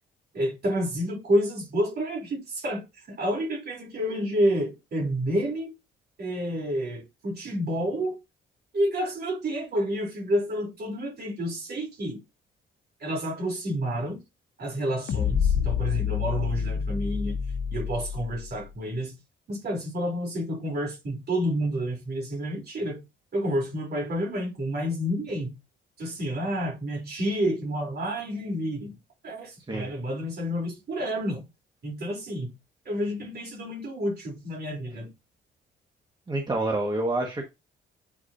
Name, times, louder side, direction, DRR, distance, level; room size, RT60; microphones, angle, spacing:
voice 1, 0.3-5.8 6.2-8.2 8.7-12.2 13.0-14.2 14.6-17.4 17.7-19.1 19.5-23.0 23.3-25.5 26.0-29.0 29.2-31.4 31.8-32.5 32.9-35.1, equal, 55° right, 3.5 m, -29 dB
sound 1, 15.1-18.5, left 7 dB, 65° left, 1.0 m, -27 dB
voice 2, 36.3-37.5, right 2 dB, 20° right, 1.7 m, -27 dB
8.5 x 4.7 x 2.7 m
cardioid pair, 90°, 20 cm